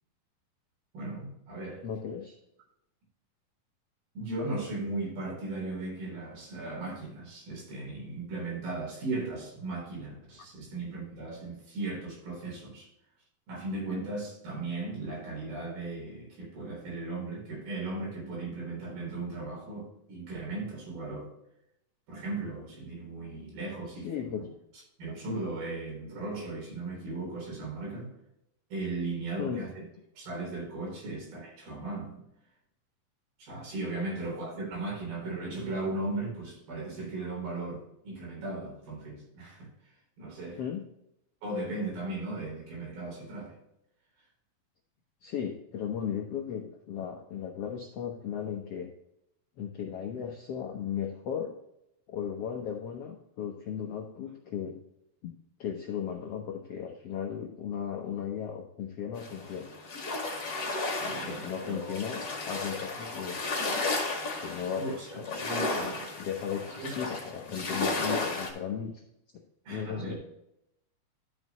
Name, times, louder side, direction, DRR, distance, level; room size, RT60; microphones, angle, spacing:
voice 1, 0.9-1.8 4.2-12.9 13.5-21.3 22.1-24.5 25.0-28.1 28.7-29.7 30.2-32.3 33.4-39.7 40.2-40.6 41.4-43.6 60.9-62.0 64.8-66.1 66.8-66.9 69.7-70.2, right 2 dB, 85° right, -2 dB, 5.6 m, -37 dB
voice 2, 1.8-2.3 23.9-24.4 29.4-29.6 40.6-40.8 45.2-48.9 49.6-51.5 52.1-54.8 55.2-55.3 55.6-59.7 61.3-63.4 64.4-65.5 65.7-65.9 66.2-69.0 69.7-70.1, left 8 dB, 85° left, 2 dB, 1.3 m, -36 dB
sound 1, 59.2-68.5, left 3 dB, 35° left, 2.0 m, -34 dB
12.0 x 6.3 x 3.0 m, 0.80 s
omnidirectional pair, 4.1 m